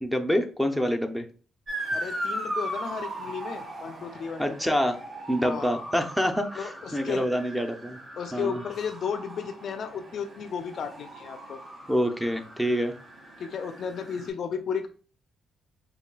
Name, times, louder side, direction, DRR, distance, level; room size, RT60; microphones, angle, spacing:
voice 1, 0.0-1.3 4.4-5.0 5.3-8.0 8.3-8.6 11.9-12.9, equal, ahead, 6 dB, 0.5 m, -26 dB
Motor vehicle (road) / Siren, 1.7-14.3, right 1 dB, 40° right, 1.6 m, -38 dB
voice 2, 1.9-4.4 5.4-5.7 6.5-7.2 8.2-11.6 13.4-14.9, left 6 dB, 60° left, 8 dB, 0.4 m, -33 dB
4.9 x 2.3 x 2.3 m, 0.38 s
cardioid pair, 90°, 0 cm